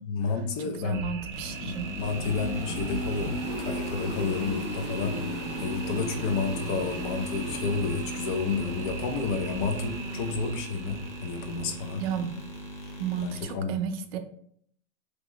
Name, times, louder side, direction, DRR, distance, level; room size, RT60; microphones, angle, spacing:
voice 1, 0.0-1.0 1.6-5.2 5.6-12.0 13.2-13.8, left 5 dB, 40° left, 5 dB, 0.5 m, -31 dB
voice 2, 0.7-1.9 12.0-12.4 13.0-14.2, right 8 dB, 55° right, 7 dB, 0.5 m, -33 dB
sound 1, 0.9-13.5, right 6 dB, 90° right, 0.8 m, -42 dB
sound 2, 1.3-13.5, equal, 70° left, 1.0 m, -36 dB
2.9 x 2.7 x 3.0 m, 0.64 s
hypercardioid pair, 135°, 38 cm